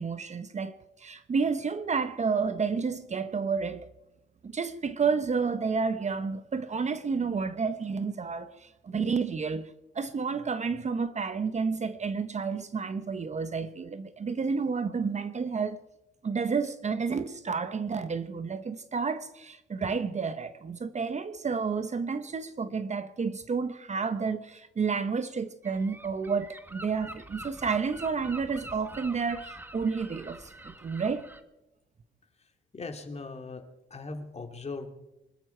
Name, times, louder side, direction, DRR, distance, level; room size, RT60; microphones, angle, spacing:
voice 1, 0.0-3.9 4.4-15.8 16.2-31.3, right 5 dB, 35° right, 1.0 m, -30 dB
Gull seagull, 25.6-31.4, right 1 dB, 10° right, 1.3 m, -46 dB
voice 2, 32.7-33.6 33.9-34.9, left 3 dB, 35° left, 2.7 m, -39 dB
25.0 x 12.5 x 4.5 m
cardioid pair, 90°, 20 cm